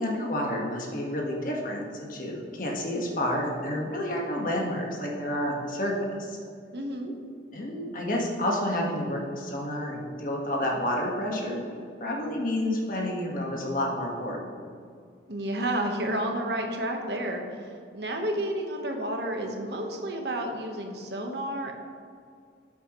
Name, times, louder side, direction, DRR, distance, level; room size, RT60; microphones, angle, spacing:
voice 1, 0.0-6.4 7.5-11.6 12.0-14.5, left 1 dB, 45° left, -1 dB, 1.6 m, -30 dB
voice 2, 6.7-7.1 15.3-21.7, right 1 dB, 65° right, 3 dB, 1.3 m, -31 dB
12.5 x 8.1 x 3.2 m, 2.2 s
head